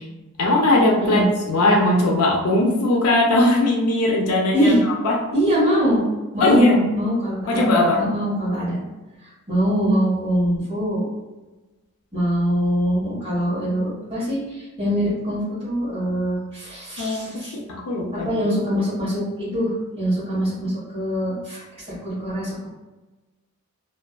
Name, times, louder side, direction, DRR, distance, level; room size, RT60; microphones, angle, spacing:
voice 1, 0.4-4.7 5.0-5.2 6.4-6.8 7.5-8.0 17.0-18.4, left 2 dB, 80° left, -1 dB, 0.5 m, -19 dB
voice 2, 5.3-6.0 6.3-8.8 9.2-11.1 12.1-17.5 18.1-22.7, equal, 30° right, -9 dB, 1.4 m, -23 dB
2.6 x 2.3 x 2.3 m, 1.1 s
head